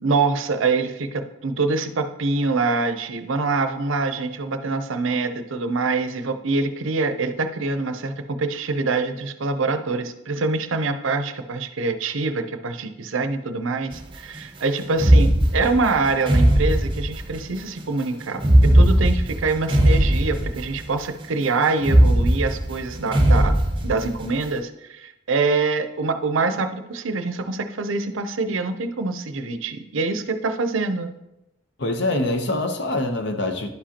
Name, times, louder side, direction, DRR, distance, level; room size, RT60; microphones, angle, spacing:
voice 1, 0.0-23.5 23.8-31.1, right 3 dB, 75° right, 8 dB, 0.6 m, -25 dB
sound 1, 13.9-14.0 14.9-17.5 18.4-20.9 21.2-21.3 21.8-24.4, right 1 dB, 25° right, 0.6 m, -18 dB
voice 2, 31.8-33.7, left 2 dB, 55° left, 5 dB, 0.8 m, -24 dB
11.0 x 5.0 x 2.9 m, 0.89 s
head